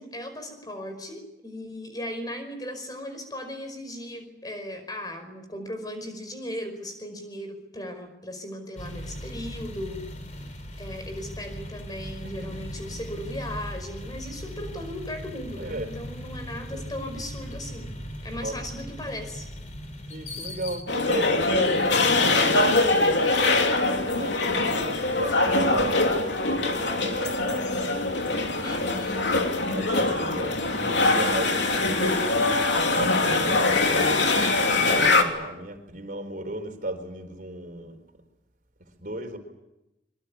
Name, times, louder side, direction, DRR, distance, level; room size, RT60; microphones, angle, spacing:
voice 1, 0.0-10.0 10.8-17.9 18.2-19.5 28.6-29.3, left 1 dB, 20° left, 7 dB, 5.2 m, -37 dB
sound 1, 8.8-20.8, equal, 45° left, 3.6 m, -38 dB
voice 2, 12.2-12.6 15.6-15.9 16.3-16.8 18.4-18.6 20.1-26.1 26.5-28.0 28.8-34.3 34.8-38.0 38.8-39.4, right 1 dB, 50° right, 6 dB, 4.1 m, -36 dB
sound 2, 20.9-35.2, left 2 dB, 85° left, 3.2 m, -23 dB
23.5 x 23.0 x 8.6 m, 0.91 s
head